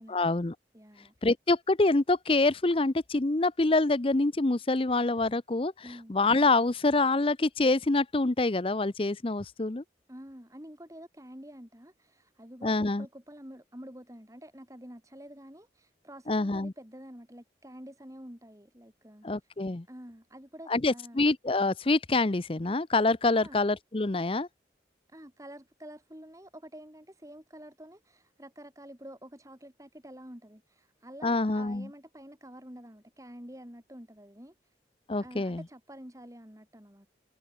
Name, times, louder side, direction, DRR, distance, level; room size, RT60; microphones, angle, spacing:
voice 1, 0.1-0.5 1.2-5.7 6.1-9.8 12.6-13.0 16.3-16.7 19.2-19.8 20.7-24.5 31.2-31.9 35.1-35.6, left 2 dB, 30° left, 0.6 m, -26 dB
voice 2, 0.7-1.3 5.8-6.2 10.1-19.5 19.9-21.2 23.3-23.6 25.1-34.7 35.2-37.1, equal, 20° right, 3.9 m, -48 dB
head